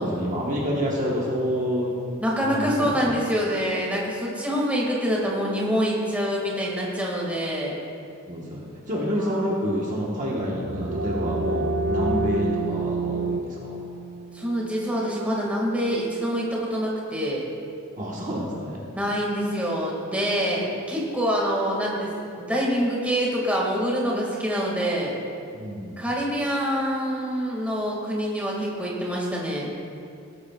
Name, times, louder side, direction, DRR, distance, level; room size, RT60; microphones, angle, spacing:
voice 1, 0.0-1.9 2.4-3.2 8.3-13.8 18.0-18.8 25.5-26.0, equal, 35° right, -4 dB, 1.3 m, -28 dB
voice 2, 2.2-7.8 9.1-9.2 14.3-17.4 18.9-22.1 22.4-25.1 26.0-29.7, equal, 5° right, -4 dB, 2.0 m, -26 dB
sound 1, 10.4-15.9, right 2 dB, 55° right, 0.5 m, -29 dB
18.5 x 9.6 x 2.4 m, 2.5 s
head